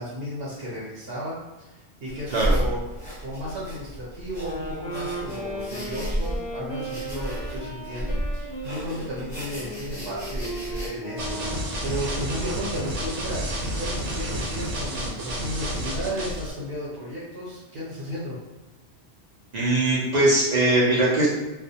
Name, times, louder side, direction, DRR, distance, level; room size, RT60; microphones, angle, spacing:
voice 1, 0.0-2.9 3.2-13.5 13.8-18.4, equal, 65° right, -7 dB, 1.0 m, -34 dB
sound 1, 2.1-10.9, equal, 20° left, 0.8 m, -32 dB
sound 2, 4.3-11.9, right 1 dB, 45° left, 0.3 m, -36 dB
sound 3, 11.2-16.5, equal, 90° right, 0.9 m, -30 dB
voice 2, 19.5-21.3, right 2 dB, 50° right, -6 dB, 0.5 m, -20 dB
2.3 x 2.1 x 2.7 m, 1.1 s
omnidirectional pair, 1.2 m